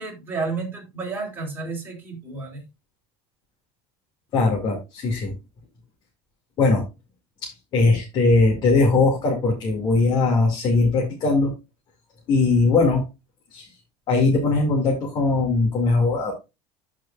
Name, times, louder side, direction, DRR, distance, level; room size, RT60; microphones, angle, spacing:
voice 1, 0.0-2.6, right 4 dB, 15° right, -1 dB, 4.0 m, -31 dB
voice 2, 4.3-5.3 6.6-6.8 7.4-11.5 12.3-13.0 13.5-13.7 14.1-16.3, left 3 dB, 40° left, 0 dB, 2.4 m, -20 dB
13.5 x 5.0 x 2.5 m, 0.25 s
cardioid pair, 155°, 12 cm